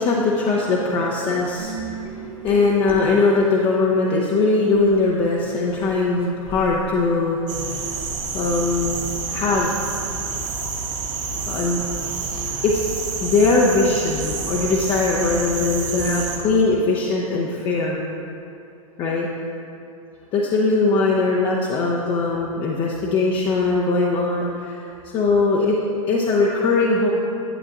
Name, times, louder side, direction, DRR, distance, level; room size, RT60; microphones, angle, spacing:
voice 1, 0.0-7.4 8.3-9.0 9.3-9.8 11.5-11.8 12.3-18.0 19.0-19.3 20.3-24.9 25.1-25.8 26.1-27.1, left 3 dB, 30° left, -3 dB, 0.7 m, -20 dB
Kalimba african, 1.6-4.0 4.7-9.9, right 4 dB, 10° right, 1.1 m, -39 dB
sound 1, 7.5-16.4, right 4 dB, 55° right, 1.8 m, -28 dB
11.0 x 8.5 x 2.5 m, 2.7 s
figure-of-eight pair, 95°, 18 cm